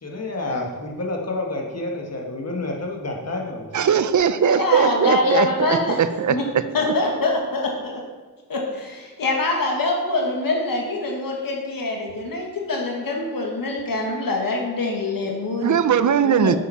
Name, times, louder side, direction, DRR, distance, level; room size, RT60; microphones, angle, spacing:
voice 1, 0.0-3.7, left 2 dB, 45° left, 0 dB, 1.6 m, -29 dB
voice 2, 3.7-6.4 15.6-16.6, right 8 dB, 55° right, 13 dB, 0.6 m, -19 dB
voice 3, 4.4-6.0 6.3-6.4 6.7-7.9 8.5-15.8 16.2-16.6, left 2 dB, 70° left, 0 dB, 1.7 m, -24 dB
8.8 x 7.3 x 5.7 m, 1.4 s
wide cardioid pair, 145°, 35 cm